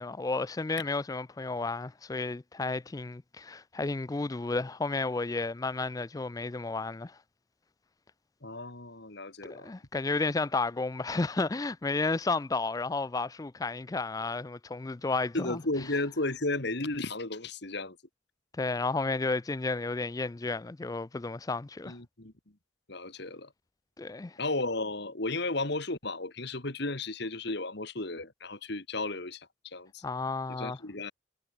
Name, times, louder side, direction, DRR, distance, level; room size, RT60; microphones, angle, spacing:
voice 1, 0.0-7.2 9.4-15.6 18.6-21.9 24.0-24.4 30.0-30.8, left 3 dB, 15° left, 0.3 m, -32 dB
voice 2, 8.4-9.7 15.3-18.0 21.9-22.3 22.9-23.5 24.4-30.0 30.5-31.1, left 2 dB, 55° left, 2.1 m, -34 dB
head